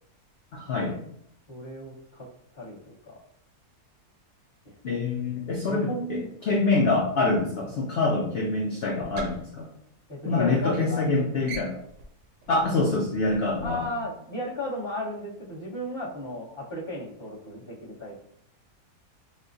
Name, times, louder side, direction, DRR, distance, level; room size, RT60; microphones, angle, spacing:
voice 1, 0.5-1.0 4.8-6.2 6.5-9.7 10.3-11.8 12.5-13.8, left 3 dB, 75° left, -1 dB, 0.5 m, -25 dB
voice 2, 1.5-2.3 2.5-2.8 3.0-3.2 4.9-5.0 5.7-6.8 10.1-11.2 11.5-11.6 13.6-18.2, left 1 dB, 20° left, -9 dB, 0.9 m, -35 dB
sound 1, 9.1-10.6 10.9-11.1 11.4-14.0, right 3 dB, 60° right, 0.8 m, -43 dB
4.3 x 2.2 x 2.6 m, 0.71 s
omnidirectional pair, 1.6 m